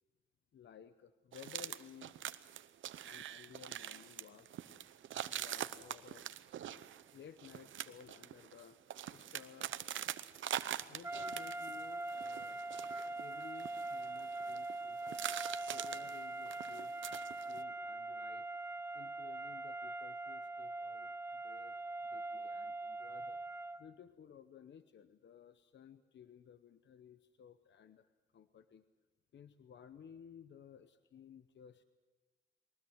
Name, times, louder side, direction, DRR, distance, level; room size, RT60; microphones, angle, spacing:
voice 1, 0.5-2.3 3.0-4.5 5.2-6.3 7.1-9.8 10.9-12.6 13.2-15.2 15.7-17.0 17.4-18.5 18.9-21.8 22.1-28.8 29.3-31.8, left 8 dB, 70° left, 11 dB, 0.9 m, -57 dB
sound 1, 1.3-11.8 12.1-14.8 15.0-17.6, right 11 dB, 85° right, 0.8 m, -44 dB
sound 2, 11.0-23.9, right 2 dB, 15° right, 0.9 m, -42 dB
22.5 x 19.5 x 8.0 m, 1.2 s
cardioid pair, 70°, 19 cm